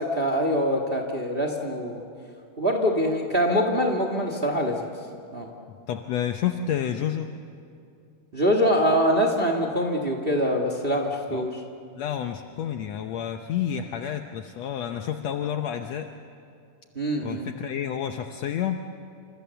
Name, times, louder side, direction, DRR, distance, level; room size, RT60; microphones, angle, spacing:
voice 1, 0.0-2.0 2.6-4.9 5.3-5.5 8.3-11.5 16.9-17.5, equal, 50° right, 3 dB, 0.6 m, -24 dB
voice 2, 5.9-7.3 11.3-11.5 11.9-16.1 17.2-18.8, left 9 dB, 80° left, 5 dB, 1.5 m, -29 dB
28.0 x 26.5 x 7.0 m, 2.4 s
omnidirectional pair, 4.1 m